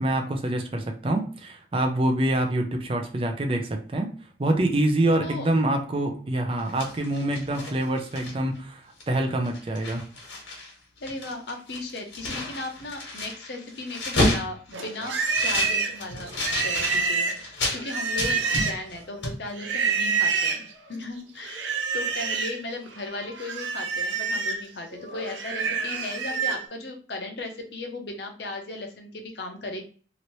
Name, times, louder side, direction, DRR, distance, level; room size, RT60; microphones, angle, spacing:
voice 1, 0.0-4.1 4.4-10.0, right 1 dB, 30° right, 3 dB, 0.4 m, -26 dB
voice 2, 5.2-5.6 11.0-15.1 15.4-29.8, left 2 dB, 65° left, 3 dB, 0.7 m, -36 dB
sound 1, 6.5-8.6 9.0-9.1 9.4-10.7 11.0-17.8 18.2-19.0 19.2-19.4, left 1 dB, 85° left, 1.3 m, -30 dB
Livestock farm animals working animals, 14.7-19.0 19.6-20.7 21.4-22.6 23.0-26.6, right 5 dB, 90° right, 0.6 m, -27 dB
2.9 x 2.7 x 3.0 m, 0.41 s
head